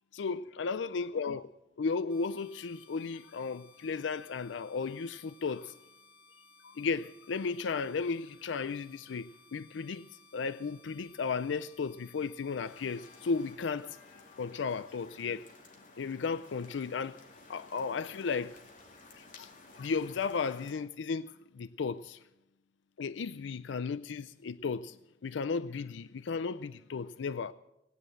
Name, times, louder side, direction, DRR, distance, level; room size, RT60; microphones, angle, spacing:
voice 1, 0.1-1.5 1.8-5.7 6.6-10.1 10.3-14.0 14.4-15.4 16.0-17.2 17.5-18.6 19.1-19.5 19.8-22.2 23.0-25.0 25.2-27.5, left 5 dB, 85° left, 0.5 m, -34 dB
sound 1, 2.1-13.5, left 3 dB, 65° left, 5.9 m, -61 dB
sound 2, 12.6-20.7, left 3 dB, 45° left, 2.7 m, -55 dB
18.0 x 9.9 x 7.7 m
head